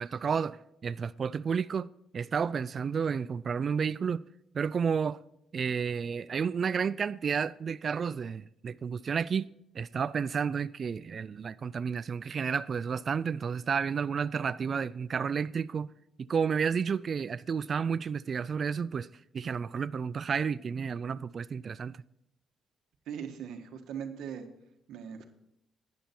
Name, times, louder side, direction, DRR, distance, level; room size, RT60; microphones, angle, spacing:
voice 1, 0.0-4.3 4.5-5.2 5.5-15.9 16.2-19.1 19.3-22.0, right 6 dB, 45° right, 0.3 m, -31 dB
voice 2, 23.1-24.5 24.9-25.3, right 8 dB, 80° right, 1.5 m, -39 dB
12.0 x 9.5 x 4.4 m
cardioid pair, 90°, 0 cm